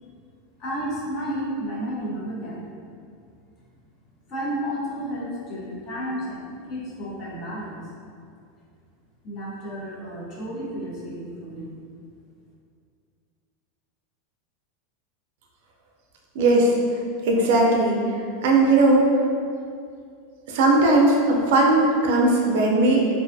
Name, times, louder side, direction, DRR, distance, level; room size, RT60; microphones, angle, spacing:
voice 1, 0.6-2.7 4.3-7.8 9.2-11.7, equal, 30° left, -6 dB, 0.6 m, -32 dB
voice 2, 16.4-16.7 17.2-18.0 18.4-19.1 20.5-23.1, right 2 dB, 60° right, 0 dB, 0.4 m, -18 dB
2.4 x 2.3 x 2.5 m, 2.3 s
supercardioid pair, 170°, 0 cm